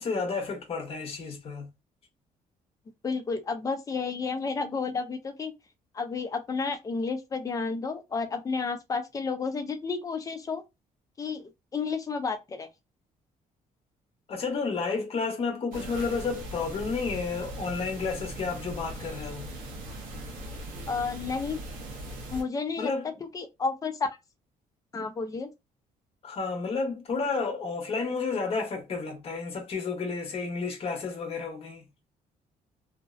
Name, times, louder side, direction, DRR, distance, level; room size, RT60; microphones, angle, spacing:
voice 1, 0.0-1.7 14.3-19.5 22.8-23.1 26.2-31.8, left 4 dB, 45° left, 0.9 m, -31 dB
voice 2, 3.0-5.5 5.9-10.6 11.2-12.7 20.9-21.6 22.3-22.9 23.3-24.1 24.9-25.5, left 4 dB, 25° left, 0.5 m, -31 dB
sound 1, 15.7-22.4, right 1 dB, 80° right, 0.7 m, -39 dB
2.5 x 2.0 x 2.4 m
cardioid pair, 135°, 14 cm